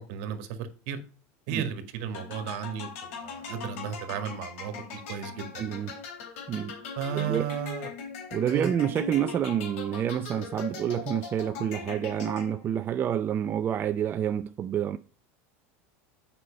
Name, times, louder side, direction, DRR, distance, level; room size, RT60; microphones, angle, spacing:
voice 1, 0.1-1.0 1.5-2.9 3.2-5.8 7.0-7.9 8.5-8.7, right 8 dB, 60° right, 1.9 m, -34 dB
sound 1, 2.1-12.8, left 5 dB, 75° left, 3.7 m, -40 dB
voice 2, 5.6-5.9 6.5-6.8 7.1-7.5 8.3-15.0, right 9 dB, 30° right, 0.5 m, -28 dB
8.1 x 5.7 x 5.3 m
supercardioid pair, 125°, 7 cm